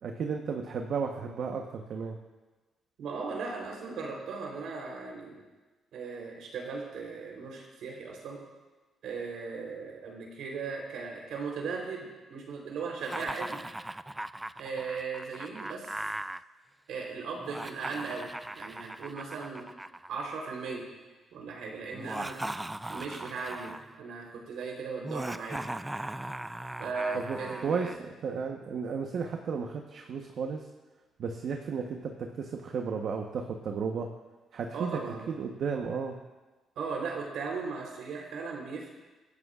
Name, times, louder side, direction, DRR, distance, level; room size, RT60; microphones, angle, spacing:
voice 1, 0.0-2.2 27.1-30.6 31.2-34.1 34.5-36.2, right 5 dB, 65° right, 3 dB, 1.1 m, -34 dB
voice 2, 3.0-5.4 5.9-8.4 9.0-13.6 14.6-16.0 16.9-19.7 20.1-20.9 21.3-22.4 22.9-25.6 26.8-27.9 34.7-35.3 36.8-38.9, right 4 dB, 80° right, -1 dB, 3.7 m, -37 dB
Laughter, 13.0-16.4 17.4-20.7 21.9-23.9 25.0-28.0, right 1 dB, 10° right, 0.3 m, -39 dB
23.0 x 13.5 x 2.5 m, 1.2 s
cardioid pair, 90°, 0 cm